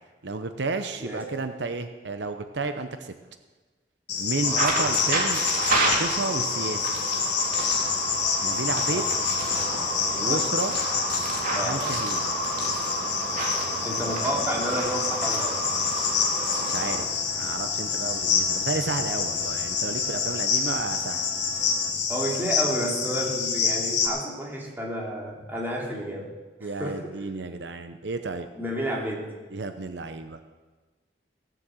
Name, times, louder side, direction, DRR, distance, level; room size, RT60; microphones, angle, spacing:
voice 1, 0.2-3.1 4.2-5.4 5.7-6.9 8.4-9.1 10.2-10.7 11.5-12.3 16.6-17.0 17.3-21.2 26.6-28.5 29.5-30.4, right 3 dB, 75° right, 8 dB, 0.8 m, -32 dB
Cricket, 4.1-24.1, left 6 dB, 80° left, 2.4 m, -27 dB
sound 1, 4.4-17.1, right 2 dB, 50° right, 3.0 m, -30 dB
voice 2, 4.5-4.9 8.9-9.2 9.5-10.4 11.5-11.9 13.8-15.6 22.1-26.3 26.6-27.0 28.5-29.2, equal, 10° right, -3 dB, 3.0 m, -31 dB
sound 2, 7.4-21.9, equal, 10° left, 5.3 m, -45 dB
17.0 x 7.8 x 7.7 m, 1.3 s
head